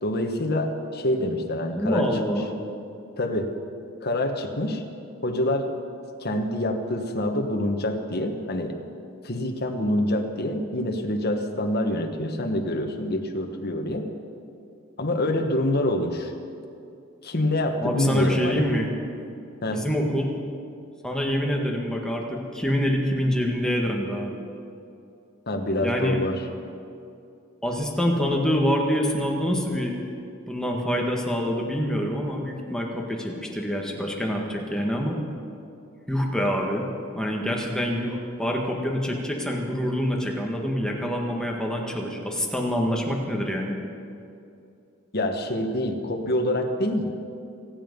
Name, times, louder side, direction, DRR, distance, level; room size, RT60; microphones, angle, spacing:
voice 1, 0.0-2.1 3.2-3.5 4.0-4.8 5.2-5.7 6.2-8.8 9.2-14.1 15.0-16.3 17.2-18.6 19.6-19.9 25.5-26.4 45.1-47.1, left 1 dB, 50° left, 4 dB, 1.4 m, -26 dB
voice 2, 1.7-2.6 17.8-18.9 19.7-20.3 21.0-24.3 25.8-26.2 27.6-30.0 30.5-35.2 36.1-36.9 37.2-43.8, equal, 5° left, 0 dB, 1.7 m, -26 dB
25.5 x 9.1 x 5.4 m, 2.6 s
head